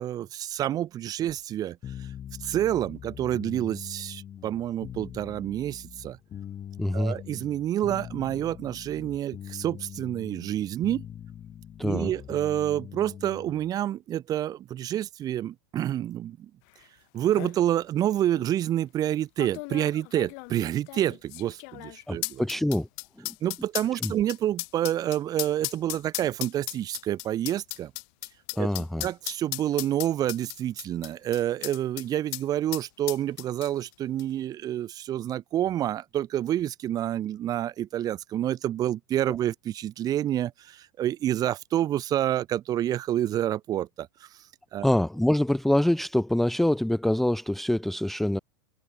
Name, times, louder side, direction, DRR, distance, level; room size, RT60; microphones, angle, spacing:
voice 1, 0.0-1.8 2.4-6.2 6.9-11.0 11.8-16.5 17.1-22.5 23.4-27.9 28.6-28.7 29.0-44.3 44.7-44.9, right 12 dB, 30° right, 1.3 m, -28 dB
sound 1, 1.8-13.7, left 9 dB, 30° left, 5.6 m, -43 dB
voice 2, 6.8-7.2 11.8-12.1 22.1-22.9 23.2-23.3 24.0-24.1 28.6-29.1 44.8-48.4, left 1 dB, ahead, 0.4 m, -25 dB
sound 2, 16.8-16.9 17.2-17.6 18.3-18.5 19.4-32.1 32.3-32.4 32.7-33.9 34.2-34.3, left 40 dB or more, 50° left, 0.6 m, -36 dB
hypercardioid pair, 110°, 12 cm